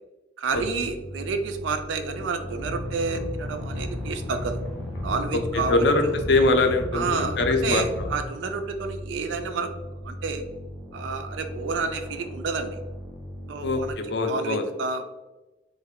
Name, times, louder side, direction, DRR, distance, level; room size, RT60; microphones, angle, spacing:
voice 1, 0.4-4.6 5.0-6.1 6.9-9.7 10.0-10.4 10.9-12.8 13.5-13.9 14.3-15.1, right 4 dB, 90° right, 7 dB, 0.3 m, -30 dB
sound 1, 0.5-13.9, equal, 5° right, 0.4 m, -39 dB
sound 2, 2.6-8.3, left 1 dB, 90° left, 0.8 m, -34 dB
voice 2, 5.7-8.1 13.6-14.7, left 2 dB, 65° left, 6 dB, 0.4 m, -23 dB
3.2 x 2.2 x 3.5 m, 1.1 s
head